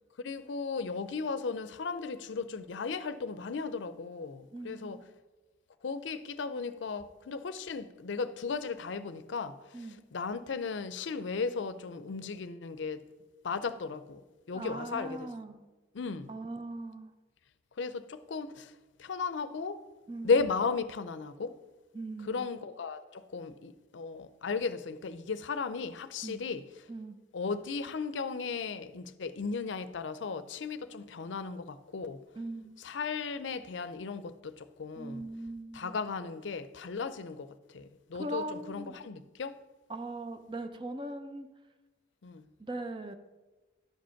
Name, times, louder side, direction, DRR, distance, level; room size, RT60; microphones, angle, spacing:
voice 1, 0.2-5.0 5.8-9.5 10.1-13.0 13.4-14.2 14.5-15.3 15.9-16.3 17.8-18.7 19.0-19.8 20.2-21.5 22.3-26.6 27.3-32.2 32.8-35.2 35.7-39.6 42.2-42.5, left 4 dB, 80° left, 0.5 m, -35 dB
voice 2, 4.5-5.0 9.7-10.0 14.5-15.6 16.3-17.1 20.1-20.4 21.9-22.5 26.2-26.4 26.9-27.2 32.4-32.7 35.0-36.0 38.2-39.0 39.9-41.5 42.6-43.1, right 2 dB, 25° right, 0.6 m, -40 dB
12.0 x 5.1 x 5.7 m
head